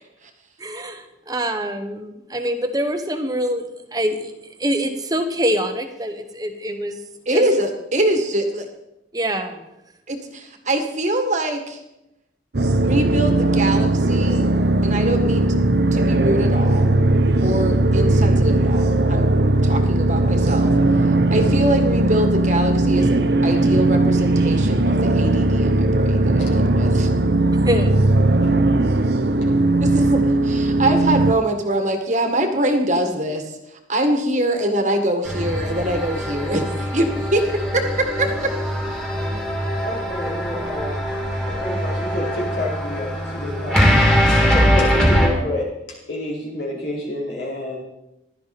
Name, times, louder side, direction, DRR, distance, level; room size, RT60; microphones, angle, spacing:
voice 1, 0.6-4.3 4.6-7.0 7.3-7.4 9.1-9.7 27.6-27.9, equal, 20° right, 7 dB, 1.2 m, -25 dB
voice 2, 7.2-8.7 10.1-11.8 12.8-14.5 14.8-15.5 15.9-16.9 17.4-19.3 19.6-20.7 21.0-27.1 29.8-38.5, right 1 dB, 40° right, 5 dB, 1.8 m, -23 dB
sound 1, 12.5-31.3, right 2 dB, 60° right, 0.8 m, -18 dB
sound 2, 35.2-45.3, equal, 5° left, 2.7 m, -21 dB
voice 3, 39.8-41.0 41.5-43.8 44.2-47.8, left 1 dB, 70° left, -4 dB, 4.5 m, -29 dB
16.0 x 12.5 x 4.2 m, 0.88 s
head